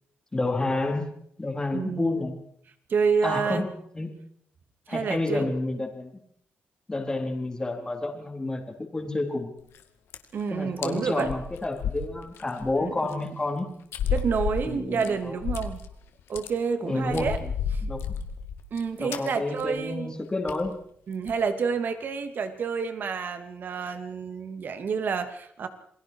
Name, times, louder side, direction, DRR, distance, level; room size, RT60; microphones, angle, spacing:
voice 1, 0.3-1.1 1.4-2.4 3.2-3.7 3.9-4.1 4.9-6.2 6.9-9.5 10.5-13.7 14.6-15.4 16.8-17.5 17.8-18.0 19.0-20.8, left 2 dB, 20° left, 1 dB, 4.1 m, -29 dB
voice 2, 1.7-2.2 2.9-3.7 4.9-5.5 10.3-11.3 12.8-13.3 14.1-15.8 16.3-17.4 17.7-17.8 18.7-20.2 21.1-25.7, right 5 dB, 55° right, 8 dB, 2.7 m, -29 dB
sound 1, 9.6-9.8 10.1-10.4 10.8-10.9 11.2-12.7 13.1-13.2 13.9-15.9 16.2-16.5 17.0-18.8 19.1-19.3 19.6-19.8 20.0-20.1 20.5-20.7 21.1-21.4, left 7 dB, 85° left, 2.2 m, -32 dB
28.5 x 21.5 x 4.8 m, 0.66 s
cardioid pair, 105°, 4 cm